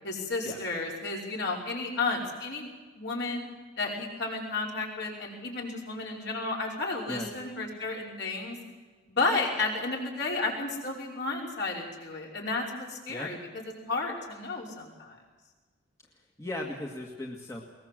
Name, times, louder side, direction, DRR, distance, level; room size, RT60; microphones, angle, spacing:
voice 1, 0.0-2.7 3.0-3.5 3.8-8.6 9.1-13.4 13.8-15.2, left 3 dB, 55° left, -1 dB, 5.5 m, -32 dB
voice 2, 16.4-17.6, left 1 dB, 15° left, -1 dB, 1.9 m, -36 dB
21.5 x 20.5 x 7.7 m, 1.3 s
head